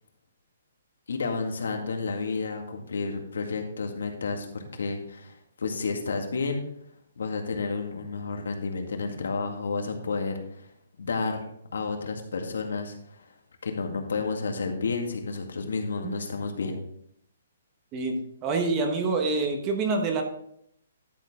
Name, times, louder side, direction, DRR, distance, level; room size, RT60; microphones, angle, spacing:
voice 1, 1.1-6.6 7.2-10.7 11.0-11.5 11.7-13.3 13.6-16.8, left 4 dB, 85° left, 4 dB, 1.9 m, -31 dB
voice 2, 17.9-20.2, right 3 dB, 20° right, 4 dB, 1.1 m, -26 dB
11.5 x 6.5 x 3.7 m, 0.71 s
hypercardioid pair, 170°, 0 cm